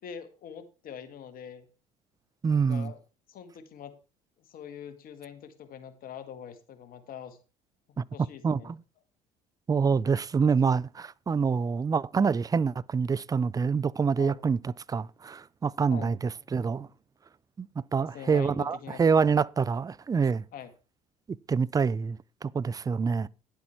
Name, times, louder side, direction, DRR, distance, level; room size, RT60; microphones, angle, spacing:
voice 1, 0.0-1.7 2.5-3.0 3.3-4.0 4.5-7.4 7.9-8.8 14.2-14.4 15.9-16.1 18.0-19.4 20.5-20.7, left 8 dB, 55° left, 1.7 m, -44 dB
voice 2, 2.4-2.9 8.0-8.1 8.4-8.8 9.7-16.9 17.6-20.4 21.5-23.3, right 5 dB, 20° right, 0.4 m, -26 dB
10.5 x 8.1 x 4.4 m
hypercardioid pair, 65°, 18 cm